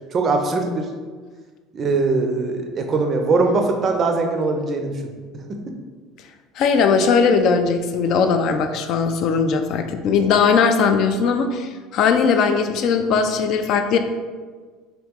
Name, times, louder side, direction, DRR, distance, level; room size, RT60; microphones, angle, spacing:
voice 1, 0.1-0.9 1.7-5.0 5.3-5.7, right 3 dB, 30° right, 4 dB, 0.5 m, -21 dB
voice 2, 6.6-14.0, left 5 dB, 50° left, 7 dB, 0.3 m, -19 dB
3.6 x 2.9 x 3.6 m, 1.5 s
cardioid pair, 150°, 0 cm